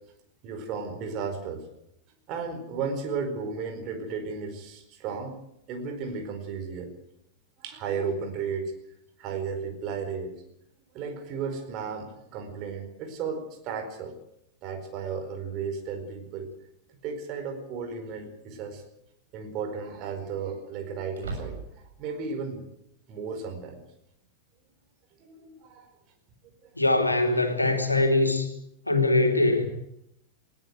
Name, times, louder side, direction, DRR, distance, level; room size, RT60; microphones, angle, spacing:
voice 1, 0.4-1.6 2.3-5.4 5.7-6.9 7.6-8.7 9.2-10.4 10.9-14.2 14.6-16.5 17.0-18.8 19.3-22.7 23.1-23.8 25.2-25.9, right 5 dB, 40° right, 4.7 m, -34 dB
sound 1, 16.5-16.6 18.4-18.9 19.2-19.3 21.1-22.0, right 3 dB, 65° right, 7.0 m, -38 dB
voice 2, 26.7-28.5 28.9-29.7, left 2 dB, 85° left, 3.1 m, -22 dB
20.5 x 18.0 x 8.0 m
figure-of-eight pair, 90°, 0 cm